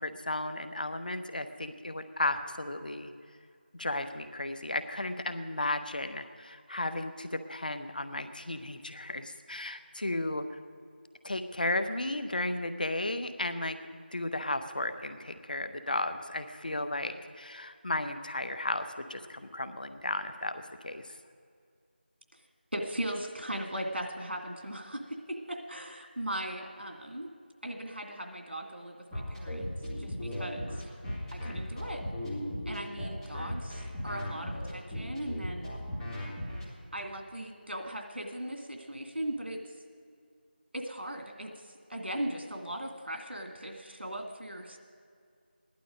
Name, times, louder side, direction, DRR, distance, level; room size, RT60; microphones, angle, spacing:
voice 1, 0.0-3.1 3.7-10.4 11.2-21.0, left 2 dB, 50° left, 9 dB, 0.9 m, -34 dB
voice 2, 22.7-27.3 27.6-29.7 30.0-30.9 31.3-32.0 32.7-35.8 36.9-39.8 40.7-44.8, right 1 dB, 75° right, 3 dB, 2.2 m, -38 dB
sound 1, 29.1-36.6, left 1 dB, 5° left, 1.7 m, -36 dB
16.0 x 11.5 x 5.2 m, 2.2 s
figure-of-eight pair, 170°, 6 cm